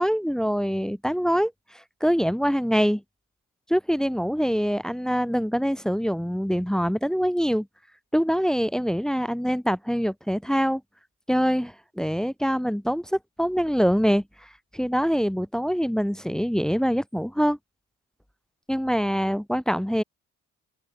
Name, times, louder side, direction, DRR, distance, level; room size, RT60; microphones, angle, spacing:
voice 1, 0.0-3.0 3.7-7.7 8.1-10.8 11.3-17.6 18.7-20.0, equal, ahead, 0.8 m, -24 dB
open air
cardioid pair, 90°, 30 cm